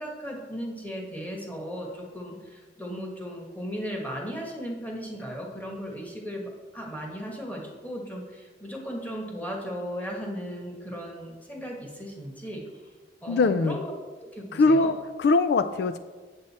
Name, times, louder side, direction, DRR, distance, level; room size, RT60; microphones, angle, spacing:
voice 1, 0.0-12.6 13.2-13.9 14.2-14.9, equal, 10° left, -1 dB, 1.4 m, -36 dB
voice 2, 13.3-13.8 14.5-14.9 15.2-16.0, left 3 dB, 70° left, 12 dB, 0.4 m, -21 dB
7.9 x 7.5 x 4.2 m, 1.4 s
head